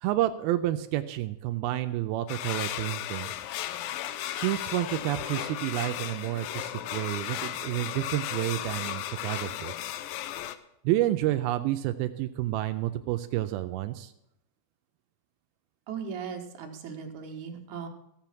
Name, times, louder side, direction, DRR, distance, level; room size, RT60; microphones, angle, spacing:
voice 1, 0.0-3.3 4.3-9.7 10.8-14.1, right 14 dB, 90° right, 8 dB, 2.5 m, -29 dB
sound 1, 2.3-10.6, left 12 dB, 80° left, 2.2 m, -35 dB
voice 2, 15.9-17.9, right 6 dB, 65° right, 2 dB, 2.6 m, -38 dB
15.0 x 7.6 x 5.9 m, 0.82 s
omnidirectional pair, 4.3 m